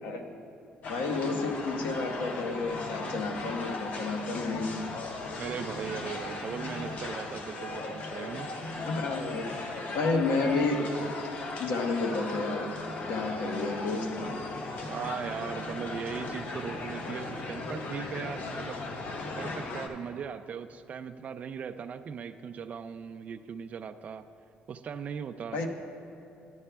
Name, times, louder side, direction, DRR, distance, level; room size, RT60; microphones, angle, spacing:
sound 1, 0.8-19.9, left 3 dB, 55° left, 0.8 m, -37 dB
voice 1, 0.9-4.7 8.8-9.7 9.9-10.9 11.6-12.7 13.1-14.6 25.5-25.7, left 3 dB, 85° left, 4 dB, 0.9 m, -31 dB
voice 2, 5.4-8.5 14.9-18.8 19.3-24.3 24.7-25.7, right 7 dB, 45° right, 10 dB, 0.3 m, -38 dB
11.5 x 11.0 x 2.3 m, 2.8 s
cardioid pair, 130°, 3 cm